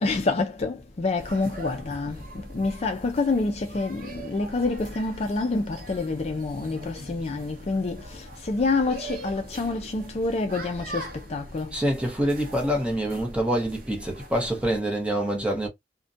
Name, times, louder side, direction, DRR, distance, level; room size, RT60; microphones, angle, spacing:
voice 1, 0.0-11.8, left 3 dB, 35° left, 0.4 m, -27 dB
sound 1, 1.2-14.8, right 1 dB, 55° right, 0.7 m, -41 dB
voice 2, 11.7-15.7, right 1 dB, 5° right, 0.7 m, -26 dB
2.5 x 2.1 x 2.5 m
head